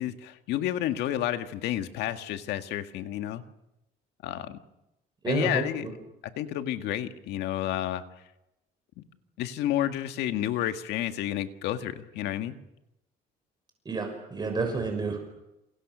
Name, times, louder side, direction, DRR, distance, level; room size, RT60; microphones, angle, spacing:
voice 1, 0.0-3.4 4.2-4.6 5.3-5.9 6.4-8.0 9.0-9.1 9.4-12.6, left 12 dB, 85° left, 8 dB, 1.9 m, -30 dB
voice 2, 5.2-5.9 13.8-15.2, right 4 dB, 25° right, 4 dB, 6.3 m, -30 dB
28.5 x 28.0 x 6.3 m, 0.91 s
cardioid pair, 110°, 17 cm